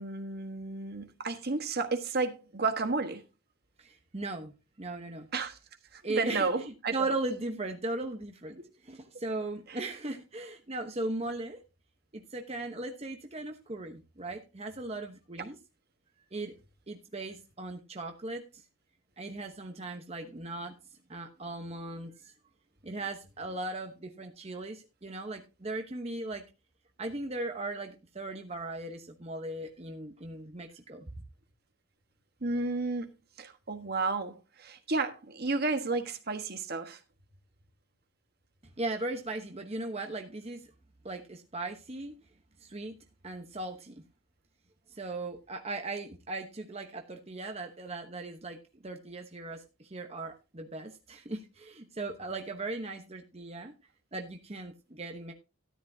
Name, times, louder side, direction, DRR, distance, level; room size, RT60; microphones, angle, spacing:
voice 1, 0.0-3.2 5.3-5.6 5.9-7.1 8.6-8.7 9.7-9.8 32.4-33.1 33.4-37.0, right 3 dB, 50° right, 1.4 m, -32 dB
voice 2, 3.8-5.3 6.0-11.6 12.1-15.6 16.3-16.5 16.9-18.6 19.2-20.8 21.1-22.3 22.8-26.4 27.0-31.1 38.6-40.7 41.0-42.1 42.6-42.9 43.2-44.0 44.9-53.7 54.1-55.3, right 2 dB, 30° right, 1.0 m, -38 dB
13.5 x 10.5 x 2.8 m
head